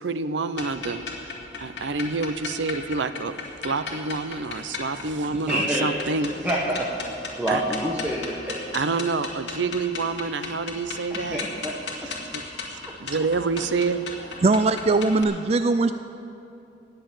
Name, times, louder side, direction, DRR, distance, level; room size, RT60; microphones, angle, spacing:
voice 1, 0.0-3.3 3.6-6.3 7.5-7.6 8.7-11.4 11.9-12.4 12.7-14.0, right 4 dB, 75° right, 11 dB, 0.7 m, -28 dB
sound 1, 0.5-15.2, left 4 dB, 70° left, 2.3 m, -36 dB
voice 2, 5.5-5.9 6.4-6.9 7.4-8.5 11.1-11.7 12.0-12.1 12.9-13.0, right 1 dB, 10° right, -4 dB, 1.3 m, -27 dB
voice 3, 14.4-15.9, right 3 dB, 35° right, 10 dB, 0.4 m, -20 dB
18.5 x 6.9 x 8.9 m, 2.8 s
head